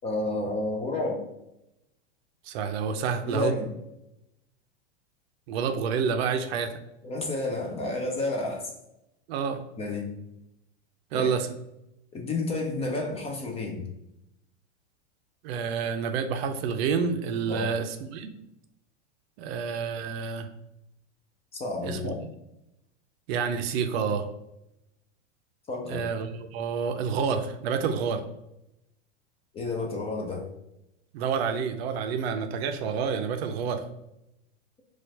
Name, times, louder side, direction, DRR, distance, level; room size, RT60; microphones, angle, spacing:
voice 1, 0.0-1.2 3.3-3.7 7.0-8.7 9.8-10.1 11.1-11.3 12.1-13.9 17.5-17.7 21.5-22.2 25.7-26.0 29.5-30.5, left 2 dB, 20° left, 1 dB, 0.4 m, -30 dB
voice 2, 2.5-3.5 5.5-6.8 9.3-9.6 11.1-11.5 15.4-18.3 19.4-20.5 21.8-22.1 23.3-24.3 25.8-28.2 31.1-33.8, right 6 dB, 60° right, 7 dB, 0.5 m, -28 dB
4.2 x 2.4 x 2.7 m, 0.87 s
hypercardioid pair, 125°, 35 cm